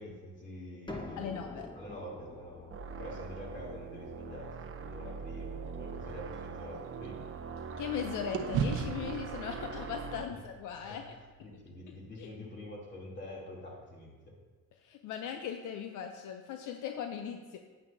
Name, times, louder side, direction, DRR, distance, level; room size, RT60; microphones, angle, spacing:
voice 1, 0.0-1.3 1.7-2.7 3.0-7.3 10.3-10.4 10.9-11.0 11.4-14.3, left 1 dB, 40° left, -4 dB, 2.9 m, -46 dB
sound 1, 0.9-6.5, left 1 dB, 15° left, 1.0 m, -48 dB
voice 2, 1.2-1.7 7.8-11.0 11.9-12.3 14.8-17.6, left 8 dB, 85° left, 5 dB, 0.6 m, -39 dB
sound 2, 2.7-10.3, right 5 dB, 45° right, 0.7 m, -42 dB
sound 3, 5.6-8.0 8.3-12.6, right 6 dB, 90° right, 0.8 m, -39 dB
9.7 x 8.9 x 2.7 m, 1.3 s
cardioid pair, 90°, 30 cm